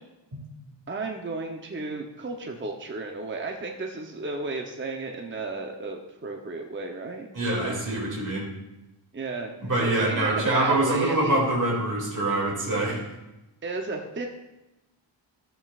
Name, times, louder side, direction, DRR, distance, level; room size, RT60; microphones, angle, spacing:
voice 1, 0.9-7.3 7.6-8.2 9.1-11.5 13.6-14.3, right 3 dB, 25° right, 3 dB, 0.7 m, -33 dB
voice 2, 7.3-8.5 9.6-13.0, right 2 dB, 40° right, -4 dB, 2.5 m, -25 dB
13.5 x 8.0 x 2.4 m, 0.98 s
wide cardioid pair, 125°, 46 cm